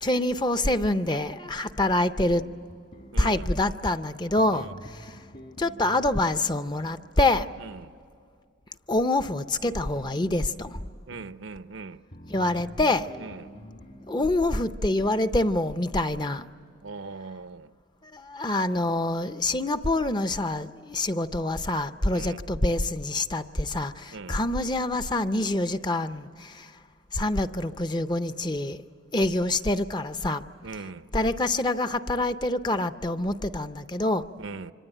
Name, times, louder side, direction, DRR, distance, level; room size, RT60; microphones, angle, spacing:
voice 1, 0.0-2.4 3.2-5.2 5.6-7.5 8.9-10.8 12.3-13.1 14.1-16.5 18.0-26.7 27.1-28.8 29.1-30.4 31.1-34.2, left 1 dB, 20° left, 0.6 m, -26 dB
sound 1, 2.2-3.6 4.4-7.6 10.0-11.4 12.1-15.3, equal, 45° left, 1.6 m, -47 dB
voice 2, 3.1-3.5 4.5-4.8 7.6-7.9 11.1-12.0 13.2-13.5 16.8-17.7 22.1-22.4 24.1-24.4 30.6-31.1 34.4-34.7, right 4 dB, 75° right, 0.7 m, -40 dB
26.0 x 25.5 x 9.1 m
head